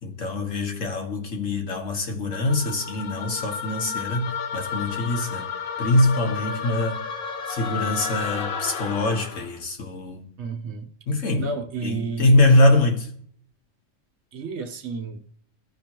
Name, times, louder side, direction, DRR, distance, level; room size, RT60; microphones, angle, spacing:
voice 1, 0.0-5.5 5.8-7.0 7.5-10.2 11.1-11.5 11.8-13.1, left 1 dB, 70° left, 1.7 m, -23 dB
sound 1, 2.3-9.6, left 6 dB, 90° left, 1.1 m, -32 dB
voice 2, 10.4-10.9 11.4-12.3 14.3-15.2, right 4 dB, 65° right, 1.1 m, -31 dB
14.5 x 5.1 x 2.9 m
omnidirectional pair, 1.4 m